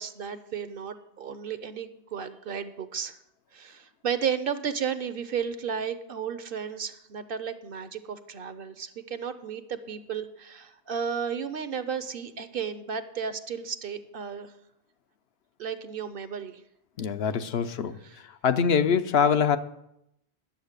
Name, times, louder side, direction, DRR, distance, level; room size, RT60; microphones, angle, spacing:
voice 1, 0.0-3.2 3.5-14.5 15.6-16.6 18.0-18.2, right 7 dB, 60° right, 12 dB, 0.9 m, -33 dB
voice 2, 17.0-18.0 18.4-19.6, left 7 dB, 70° left, 10 dB, 0.9 m, -23 dB
11.0 x 7.7 x 6.5 m, 0.80 s
omnidirectional pair, 1.1 m